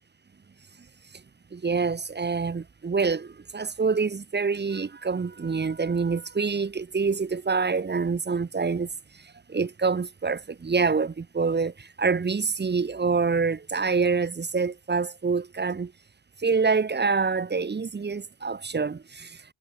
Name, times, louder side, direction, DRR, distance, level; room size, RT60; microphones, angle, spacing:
voice 1, 1.5-8.9 9.1-15.9 16.4-19.4, right 4 dB, 20° right, 1.3 m, -26 dB
cardioid pair, 175°, 49 cm